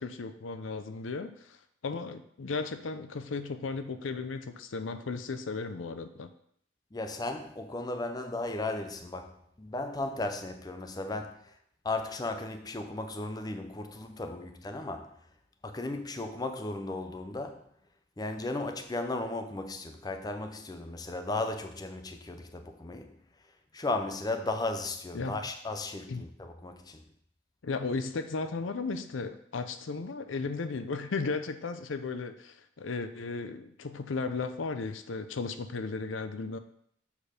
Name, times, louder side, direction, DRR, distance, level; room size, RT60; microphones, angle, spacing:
voice 1, 0.0-1.6 1.8-6.3 25.1-25.4 26.1-26.2 27.6-36.6, left 4 dB, 85° left, 0.6 m, -35 dB
voice 2, 6.9-11.4 11.8-15.1 15.6-17.6 18.2-23.2 23.7-27.0, left 2 dB, 20° left, 0.5 m, -35 dB
7.2 x 4.4 x 5.0 m
head